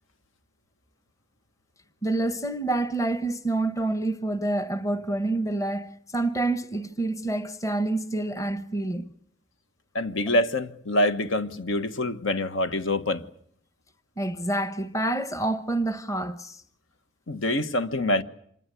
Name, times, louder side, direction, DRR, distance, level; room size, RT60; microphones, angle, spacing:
voice 1, 2.0-9.1 14.2-16.6, right 2 dB, 15° left, 1.1 m, -27 dB
voice 2, 9.9-13.2 17.3-18.2, left 1 dB, 70° left, 1.5 m, -25 dB
26.5 x 20.5 x 8.4 m
head